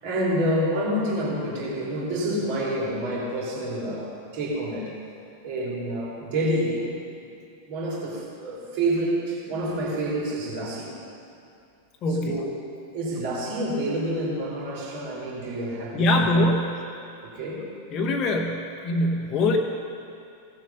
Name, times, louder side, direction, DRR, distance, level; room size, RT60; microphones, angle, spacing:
voice 1, 0.0-4.9 5.4-6.9 7.7-10.9 12.2-12.5 12.9-16.3 17.2-17.7, right 1 dB, 50° right, -5 dB, 3.4 m, -28 dB
voice 2, 12.0-12.4 15.9-16.9 17.9-19.6, left 1 dB, 35° left, 1 dB, 1.1 m, -23 dB
17.0 x 7.5 x 5.7 m, 2.5 s
figure-of-eight pair, 90°, 0 cm